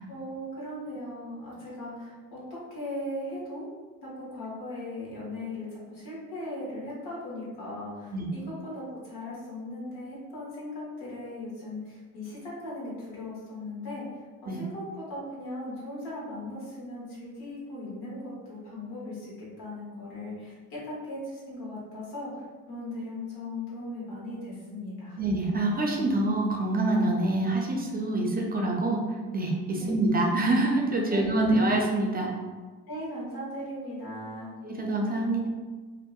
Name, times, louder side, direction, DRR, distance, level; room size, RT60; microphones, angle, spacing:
voice 1, 0.1-3.7 4.0-14.1 14.4-25.2 29.8-29.9 31.1-31.7 32.9-34.5, left 1 dB, 90° left, -6 dB, 1.0 m, -38 dB
voice 2, 25.2-29.1 29.3-32.3 34.6-35.5, right 2 dB, 25° right, 0 dB, 0.4 m, -26 dB
2.7 x 2.0 x 2.3 m, 1.4 s
cardioid pair, 70°, 37 cm